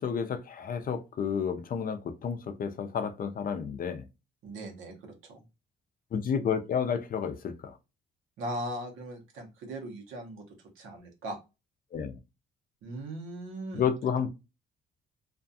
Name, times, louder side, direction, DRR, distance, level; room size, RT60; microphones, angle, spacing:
voice 1, 0.0-4.0 6.1-7.8 11.9-12.2 13.7-14.3, left 7 dB, 45° left, 0.4 m, -31 dB
voice 2, 4.4-5.4 8.4-11.4 12.8-13.9, right 1 dB, 85° right, 0.9 m, -39 dB
2.4 x 2.3 x 2.6 m
cardioid pair, 90°, 20 cm